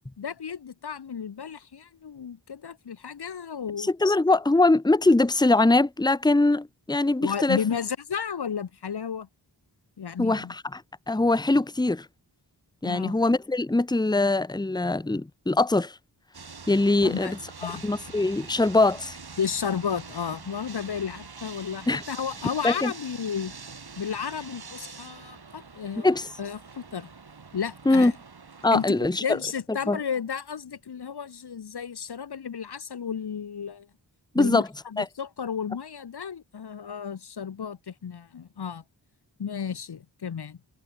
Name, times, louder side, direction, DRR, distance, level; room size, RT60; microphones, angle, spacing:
voice 1, 0.2-4.2 7.2-9.3 10.0-10.5 12.8-13.2 17.0-17.8 19.4-23.5 24.0-26.1 26.4-27.1 27.5-28.2 28.7-33.9 34.3-38.8 39.4-40.6, left 7 dB, 65° left, 0.9 m, -33 dB
voice 2, 3.8-7.6 10.2-10.8 11.1-12.0 12.8-15.9 16.7-17.4 17.8-19.2 21.9-22.0 22.6-22.9 26.0-26.3 27.9-28.1 28.6-29.2 29.9-30.0 34.3-34.7 35.0-35.1, left 2 dB, 10° left, 0.8 m, -22 dB
sound 1, 16.3-28.9, right 5 dB, 60° right, 2.0 m, -44 dB
wide cardioid pair, 65°, 43 cm